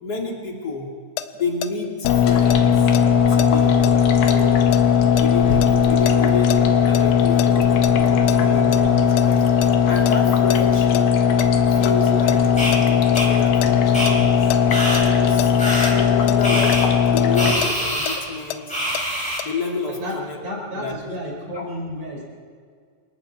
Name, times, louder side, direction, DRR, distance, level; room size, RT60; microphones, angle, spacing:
voice 1, 0.0-0.9 1.3-2.9 3.3-3.8 4.3-4.6 5.2-9.5 9.9-11.1 11.7-14.5 14.9-16.8 17.1-18.6 19.4-20.4 20.7-20.9 21.5-21.6, left 3 dB, 30° left, -1 dB, 2.0 m, -29 dB
sound 1, 1.2-7.0 7.4-9.7 10.1-10.2 10.5-11.0 11.4-14.6 14.9-15.1 15.4-15.5 15.8-15.9 16.3-19.0 19.4-19.5, left 13 dB, 80° left, 3.1 m, -30 dB
sound 2, 2.0-17.5, left 7 dB, 65° left, 2.9 m, -17 dB
sound 3, 12.6-12.7 13.1-13.3 13.9-14.1 14.7-15.0 15.6-15.9 16.4-16.9 17.3-18.2 18.7-19.4, equal, ahead, 5.1 m, -25 dB
voice 2, 19.9-22.2, equal, 40° right, -1 dB, 5.9 m, -32 dB
27.5 x 21.5 x 4.4 m, 2.1 s
omnidirectional pair, 5.8 m